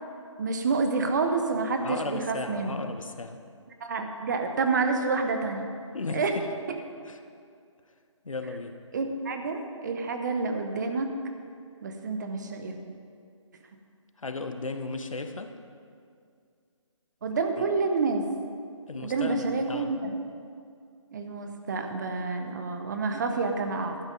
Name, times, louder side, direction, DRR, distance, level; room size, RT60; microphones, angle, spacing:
voice 1, 0.4-2.8 3.8-5.7 6.1-6.3 8.9-11.1 11.8-12.7 17.2-18.2 19.0-20.1 21.1-24.0, right 4 dB, 35° right, 5 dB, 0.9 m, -28 dB
voice 2, 1.8-3.4 5.9-6.5 7.1-7.2 8.2-8.8 14.2-15.5 17.6-17.7 18.9-20.0, left 3 dB, 85° left, 7 dB, 1.0 m, -35 dB
11.5 x 10.5 x 3.9 m, 2.3 s
figure-of-eight pair, 155°, 17 cm